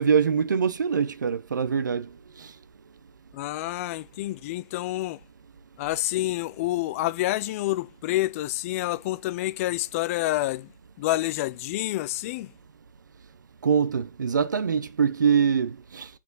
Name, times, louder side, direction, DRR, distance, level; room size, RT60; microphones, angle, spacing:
voice 1, 0.0-2.1 13.6-16.1, right 6 dB, 85° right, 0.7 m, -23 dB
voice 2, 3.3-5.2 5.8-10.7 11.0-12.5, left 17 dB, 50° left, 0.5 m, -28 dB
7.3 x 4.1 x 4.0 m
hypercardioid pair, 115°, 10 cm